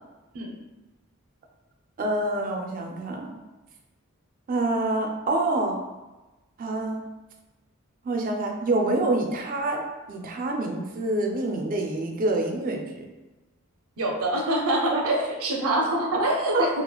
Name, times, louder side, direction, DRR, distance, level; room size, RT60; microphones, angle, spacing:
voice 1, 2.0-3.4 4.5-5.8 6.6-7.1 8.0-13.1 16.5-16.7, right 2 dB, 40° right, 2 dB, 0.4 m, -26 dB
voice 2, 14.0-16.7, right 1 dB, 85° right, -1 dB, 0.6 m, -25 dB
2.9 x 2.4 x 2.3 m, 1.1 s
head